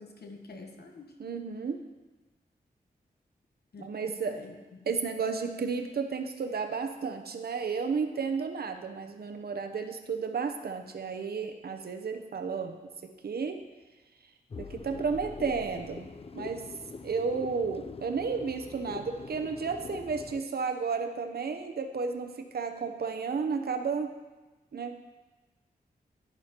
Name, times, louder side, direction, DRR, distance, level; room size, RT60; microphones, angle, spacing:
voice 1, 0.0-1.2 3.7-4.6, left 3 dB, 75° left, 3 dB, 1.1 m, -47 dB
voice 2, 1.2-1.8 3.8-4.4 4.9-12.8 13.0-13.6 14.6-16.6 17.0-24.1 24.7-25.0, right 5 dB, 70° right, 6 dB, 0.7 m, -32 dB
sound 1, 14.5-20.4, left 4 dB, 35° left, 0.4 m, -43 dB
11.0 x 10.5 x 2.9 m, 1.2 s
wide cardioid pair, 85°, 17 cm